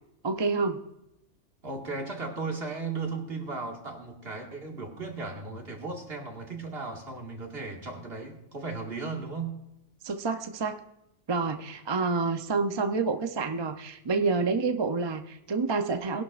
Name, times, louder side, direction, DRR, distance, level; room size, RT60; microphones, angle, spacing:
voice 1, 0.2-0.8 10.0-10.8 11.3-16.2, right 4 dB, 35° right, 7 dB, 0.5 m, -28 dB
voice 2, 1.6-9.6, right 3 dB, 55° right, 1 dB, 2.1 m, -36 dB
20.0 x 11.5 x 2.5 m, 0.86 s
omnidirectional pair, 1.2 m